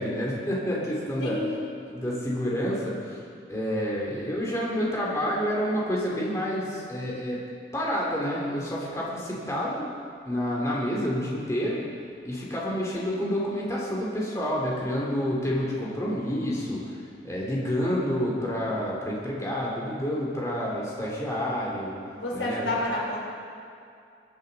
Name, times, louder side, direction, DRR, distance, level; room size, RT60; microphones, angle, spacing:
voice 1, 0.0-1.4 1.9-3.2 3.5-7.4 7.7-9.9 10.3-11.8 12.2-16.9 17.2-21.9 22.3-22.9, equal, 15° left, -5 dB, 2.4 m, -29 dB
voice 2, 1.2-1.7 22.1-23.2, left 2 dB, 85° left, -3 dB, 3.8 m, -29 dB
22.0 x 10.5 x 3.9 m, 2.3 s
head